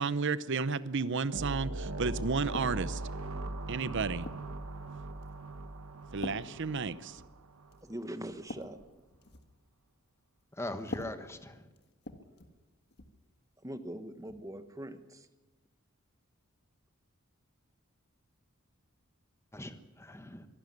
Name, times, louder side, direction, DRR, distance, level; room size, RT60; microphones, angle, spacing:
voice 1, 0.0-3.0 3.7-4.3 6.1-7.2, right 4 dB, 55° right, 16 dB, 0.7 m, -32 dB
sound 1, 1.3-7.8, right 2 dB, 75° right, 1.3 m, -40 dB
sound 2, 2.5-3.1 3.7-4.6 5.2-5.5 6.2-7.4 7.7-7.9 8.2-9.6 10.8-12.6 12.9-13.2 14.3-14.4, left 2 dB, 50° left, 1.7 m, -45 dB
voice 2, 7.8-8.8 13.6-15.3, right 1 dB, 15° right, 9 dB, 1.2 m, -42 dB
voice 3, 10.5-11.7 19.5-20.5, left 1 dB, 10° left, 9 dB, 1.3 m, -41 dB
23.5 x 12.0 x 9.8 m, 1.2 s
head